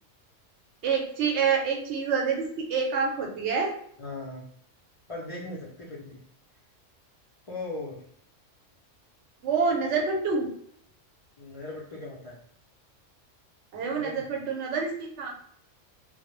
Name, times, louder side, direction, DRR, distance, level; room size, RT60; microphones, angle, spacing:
voice 1, 0.8-3.7 9.4-10.5 13.7-15.3, right 5 dB, 65° right, 0 dB, 0.8 m, -27 dB
voice 2, 4.0-4.4 5.1-6.2 7.5-8.0 11.4-12.4 13.9-14.3, left 2 dB, 60° left, -6 dB, 0.3 m, -38 dB
2.2 x 2.0 x 2.9 m, 0.65 s
omnidirectional pair, 1.3 m